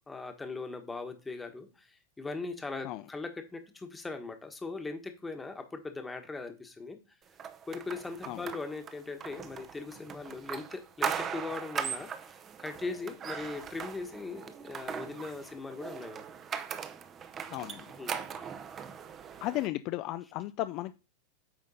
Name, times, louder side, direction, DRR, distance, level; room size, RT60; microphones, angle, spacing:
voice 1, 0.1-7.0 7.7-16.3 18.0-18.2, left 3 dB, 10° left, 6 dB, 1.2 m, -40 dB
sound 1, 7.4-19.7, right 7 dB, 25° right, 0.7 m, -39 dB
voice 2, 17.5-17.9 19.4-20.9, left 16 dB, 40° left, 13 dB, 0.3 m, -34 dB
8.8 x 3.8 x 5.5 m, 0.31 s
supercardioid pair, 145°, 0 cm